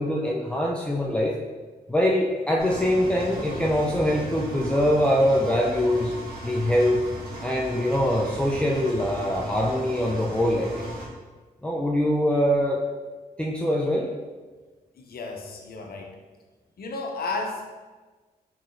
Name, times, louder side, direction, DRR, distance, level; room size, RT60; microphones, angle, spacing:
voice 1, 0.0-1.4 1.9-6.1 6.4-7.0 7.4-10.9 11.6-12.8 13.4-14.1, equal, 5° left, -3 dB, 0.4 m, -23 dB
Engine, 2.6-11.0, right 1 dB, 75° right, 1.5 m, -37 dB
voice 2, 15.0-16.1 16.8-17.7, left 3 dB, 75° left, 2 dB, 0.6 m, -33 dB
4.7 x 3.1 x 2.5 m, 1.3 s
cardioid pair, 65°, 16 cm